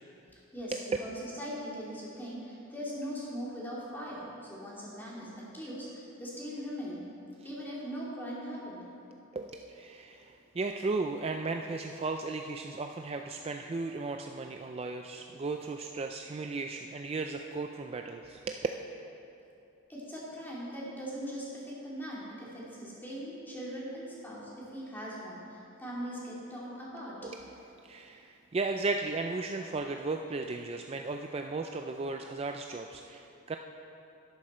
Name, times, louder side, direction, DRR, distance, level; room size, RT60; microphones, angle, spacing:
voice 1, 0.5-7.0 7.4-8.8 19.9-27.1, equal, 10° left, -7 dB, 2.7 m, -40 dB
voice 2, 9.3-18.7 27.2-33.6, right 3 dB, 30° right, 4 dB, 0.3 m, -35 dB
11.5 x 11.5 x 4.4 m, 2.8 s
head